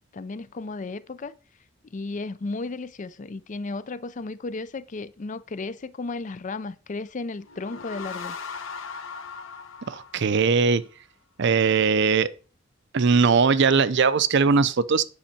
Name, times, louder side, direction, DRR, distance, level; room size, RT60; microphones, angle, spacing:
voice 1, 0.1-1.4 1.9-8.4, left 3 dB, 40° left, 0.5 m, -34 dB
sound 1, 7.4-10.9, left 5 dB, 75° left, 1.0 m, -39 dB
voice 2, 9.9-10.8 11.4-12.3 12.9-15.0, right 5 dB, 60° right, 0.5 m, -20 dB
8.7 x 5.4 x 4.3 m
head